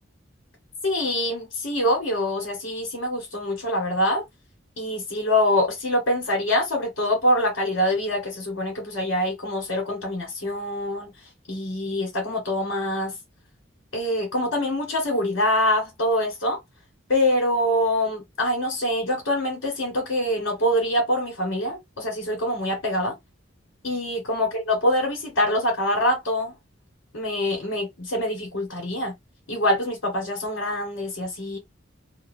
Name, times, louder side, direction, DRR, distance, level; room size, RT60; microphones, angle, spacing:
voice 1, 0.8-4.2 4.8-11.1 11.5-13.1 13.9-16.6 17.1-23.1 23.8-26.5 27.1-29.1 29.5-31.6, left 1 dB, 75° left, 1.5 m, -25 dB
2.7 x 2.4 x 2.6 m
head